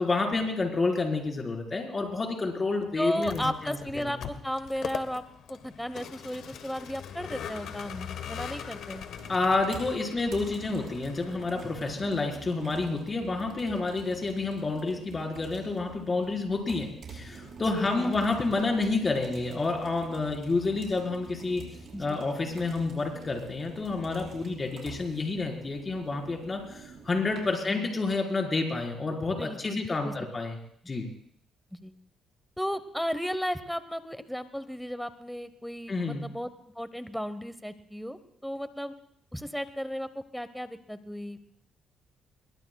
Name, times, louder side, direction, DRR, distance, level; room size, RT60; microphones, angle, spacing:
voice 1, 0.0-4.1 9.3-21.6 22.0-30.5 30.9-31.1 35.9-36.3, left 3 dB, 30° left, 2 dB, 4.3 m, -29 dB
voice 2, 3.0-5.2 5.5-9.0 13.7-13.8 17.6-18.2 21.9-22.2 27.5-27.9 29.4-30.3 31.7-31.9 32.6-36.5 36.7-38.9 39.3-41.4, equal, ahead, 12 dB, 1.0 m, -35 dB
Vehicle, 3.1-12.5, left 8 dB, 75° left, 1.3 m, -42 dB
sound 1, 9.2-27.5, right 4 dB, 55° right, 5.2 m, -46 dB
23.0 x 21.5 x 2.3 m, 0.66 s
cardioid pair, 90°, 0 cm